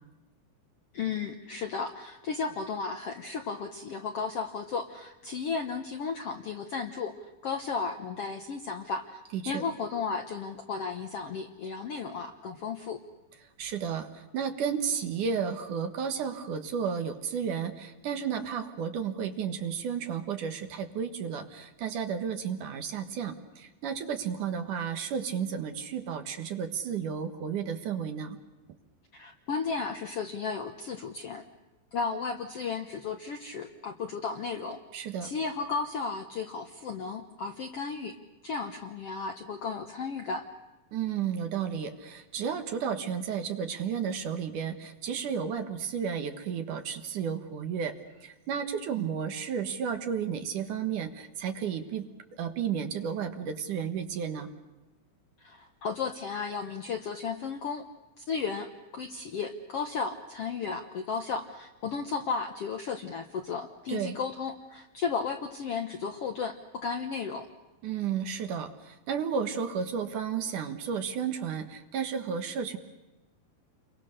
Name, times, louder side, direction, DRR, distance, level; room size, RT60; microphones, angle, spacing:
voice 1, 0.9-9.2 9.5-13.0 29.1-31.4 31.9-34.8 35.2-38.1 38.4-40.4 55.4-57.9 58.2-67.5, left 5 dB, 65° left, 5 dB, 1.5 m, -34 dB
voice 2, 9.3-9.6 13.6-28.4 34.9-35.3 40.9-52.1 52.4-54.5 63.9-64.2 67.8-72.8, right 7 dB, 65° right, 7 dB, 2.8 m, -32 dB
30.0 x 23.0 x 6.6 m, 1.1 s
omnidirectional pair, 4.2 m